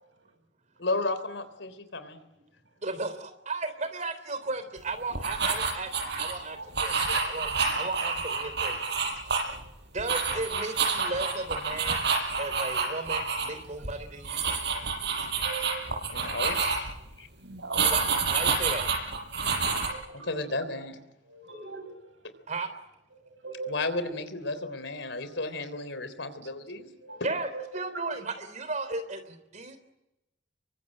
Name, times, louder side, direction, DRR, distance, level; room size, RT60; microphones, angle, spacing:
voice 1, 0.8-2.2 6.9-7.3 16.1-16.6 17.2-17.3 20.3-21.0 23.7-26.9, left 2 dB, 85° left, 11 dB, 3.6 m, -33 dB
voice 2, 2.8-5.9 6.2-7.0 7.2-9.0 9.9-12.0 12.4-14.4 17.9-18.0 18.3-18.9 19.3-19.4 22.5-22.7 27.2-29.8, right 3 dB, 40° right, 10 dB, 3.7 m, -35 dB
sound 1, 5.1-6.3 6.7-9.7 10.0-13.5 13.7-13.9 14.2-17.0 17.7-19.9, right 5 dB, 65° right, 6.8 m, -28 dB
voice 3, 15.4-15.8 17.4-17.9 19.9-20.6 21.2-22.0 23.4-23.7 24.5-24.8 25.0-25.2 27.0-27.6, right 4 dB, 85° right, 6 dB, 7.1 m, -41 dB
28.5 x 23.5 x 8.8 m, 0.92 s
head